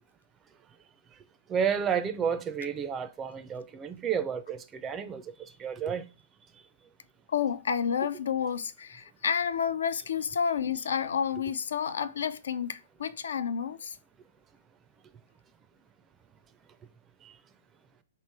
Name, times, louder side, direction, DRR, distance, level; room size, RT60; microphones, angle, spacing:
voice 1, 1.5-4.6 4.8-5.2 5.6-6.0, right 7 dB, 20° right, 0.4 m, -30 dB
voice 2, 7.3-14.0, left 7 dB, 80° left, 0.4 m, -30 dB
3.1 x 2.9 x 4.5 m
hypercardioid pair, 145°, 0 cm